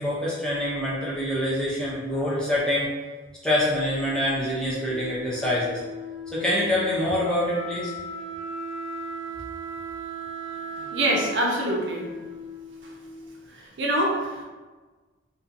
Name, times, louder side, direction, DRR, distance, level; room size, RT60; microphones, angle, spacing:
voice 1, 0.0-2.9 3.4-5.8 6.3-7.9, left 1 dB, 5° left, -8 dB, 0.4 m, -25 dB
Wind instrument woodwind instrument, 4.7-13.4, equal, 30° left, 0.9 m, -37 dB
voice 2, 10.8-12.0 13.5-14.4, right 1 dB, 60° right, -2 dB, 0.5 m, -25 dB
2.6 x 2.2 x 2.5 m, 1.3 s
head